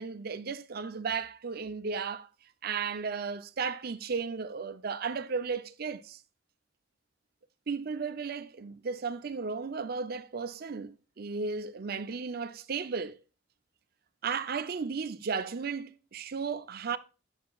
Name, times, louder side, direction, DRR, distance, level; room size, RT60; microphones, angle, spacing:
voice 1, 0.0-2.3 2.6-6.2 7.7-13.2 14.2-17.0, right 5 dB, 55° right, 0.5 m, -34 dB
9.5 x 7.1 x 2.3 m
head